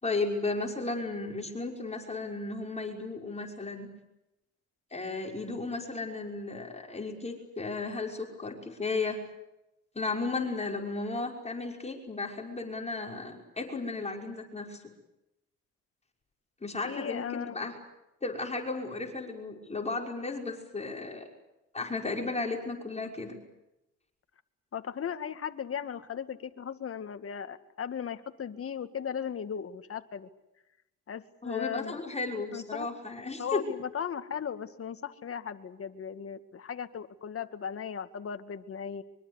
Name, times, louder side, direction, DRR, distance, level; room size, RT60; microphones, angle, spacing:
voice 1, 0.0-3.9 4.9-9.2 9.9-14.8 16.6-17.7 18.2-21.3 21.7-23.4 31.4-33.6, left 3 dB, 20° left, 2 dB, 5.9 m, -34 dB
voice 2, 16.8-17.6 24.7-30.3 31.1-32.0 32.5-32.9 33.4-39.0, left 7 dB, 50° left, 9 dB, 2.3 m, -37 dB
24.5 x 24.0 x 8.4 m, 0.90 s
cardioid pair, 90°, 30 cm